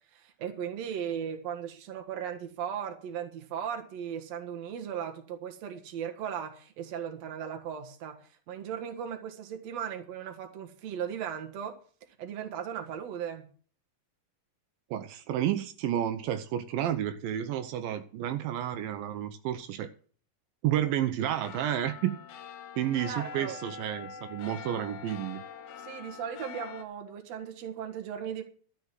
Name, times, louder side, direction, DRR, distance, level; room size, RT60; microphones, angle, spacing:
voice 1, 0.1-8.2 8.5-11.8 12.2-13.5 23.1-23.5 25.8-28.4, right 8 dB, 55° right, 4 dB, 2.4 m, -37 dB
voice 2, 14.9-19.9 20.6-22.1 22.8-25.4, right 11 dB, 85° right, 9 dB, 2.6 m, -31 dB
sound 1, 21.2-26.9, left 6 dB, 70° left, 2.4 m, -44 dB
13.0 x 6.2 x 7.4 m, 0.43 s
omnidirectional pair, 4.0 m